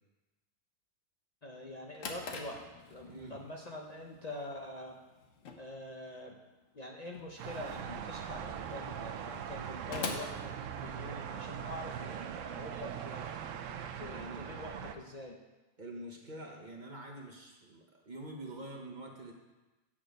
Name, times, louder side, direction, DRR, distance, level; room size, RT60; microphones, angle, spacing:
voice 1, 1.4-2.6 2.9-5.0 5.5-6.3 6.7-13.4 14.0-15.4, left 1 dB, 40° left, 0 dB, 0.8 m, -45 dB
Drawer open or close, 1.6-11.3, left 4 dB, 85° left, 1.3 m, -46 dB
voice 2, 3.1-3.4 14.1-14.4 15.8-19.3, right 1 dB, 40° right, 1 dB, 1.2 m, -46 dB
sound 1, 7.4-14.9, right 8 dB, 85° right, 1.0 m, -41 dB
8.6 x 6.7 x 5.2 m, 1.1 s
omnidirectional pair, 1.3 m